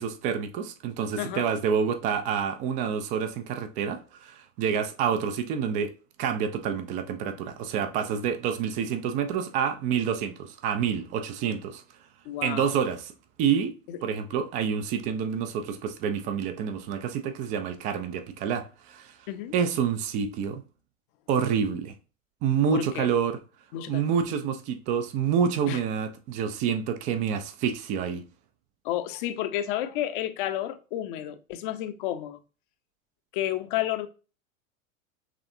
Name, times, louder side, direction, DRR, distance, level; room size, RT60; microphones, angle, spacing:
voice 1, 0.0-5.9 6.2-11.8 12.4-13.1 13.4-13.7 14.0-19.1 19.5-20.6 21.3-21.9 22.4-23.4 23.9-28.2, right 7 dB, 20° right, 0.4 m, -28 dB
voice 2, 12.2-12.7 13.9-14.0 19.3-19.5 22.7-23.1 23.7-24.1 25.7-25.8 28.8-32.4 33.3-34.1, left 12 dB, 40° left, 0.6 m, -31 dB
6.0 x 3.3 x 2.6 m
figure-of-eight pair, 85°, 41 cm